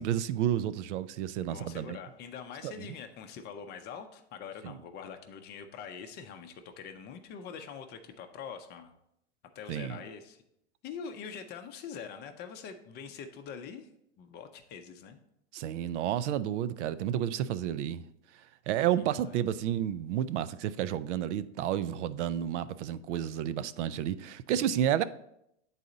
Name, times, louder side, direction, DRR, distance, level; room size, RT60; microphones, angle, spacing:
voice 1, 0.0-2.0 2.6-2.9 4.6-4.8 9.7-10.0 15.5-18.0 18.7-25.0, right 10 dB, 75° right, 0.5 m, -31 dB
voice 2, 1.5-9.0 9.5-10.4 10.8-13.9 14.2-15.2 19.0-19.4, left 7 dB, 30° left, 0.5 m, -44 dB
8.2 x 4.1 x 3.8 m
supercardioid pair, 130°, 36 cm